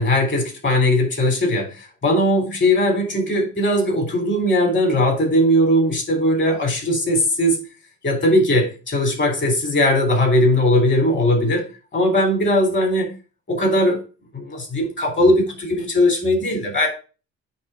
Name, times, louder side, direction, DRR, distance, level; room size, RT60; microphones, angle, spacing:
voice 1, 0.0-7.6 8.0-11.7 11.9-13.1 13.5-14.0 14.3-16.9, left 1 dB, 40° left, 2 dB, 3.5 m, -19 dB
9.4 x 3.3 x 4.9 m, 0.35 s
cardioid pair, 90°, 30 cm